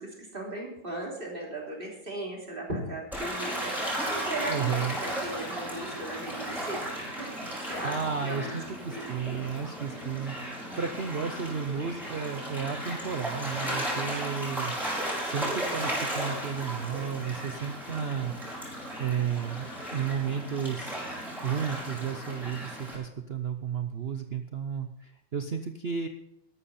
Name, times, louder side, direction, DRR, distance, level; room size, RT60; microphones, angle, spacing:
voice 1, 0.0-3.7 4.1-6.8 7.2-7.4 7.7-8.0 8.2-8.6 8.9-9.4, right 1 dB, 25° right, -2 dB, 3.4 m, -37 dB
Gull seagull / Waves surf, 3.1-23.0, right 1 dB, ahead, 4.9 m, -35 dB
voice 2, 4.5-5.0 7.8-14.8 15.2-18.4 19.0-21.0 21.4-26.1, right 7 dB, 75° right, 7 dB, 0.5 m, -33 dB
13.0 x 12.5 x 4.2 m, 0.83 s
omnidirectional pair, 2.1 m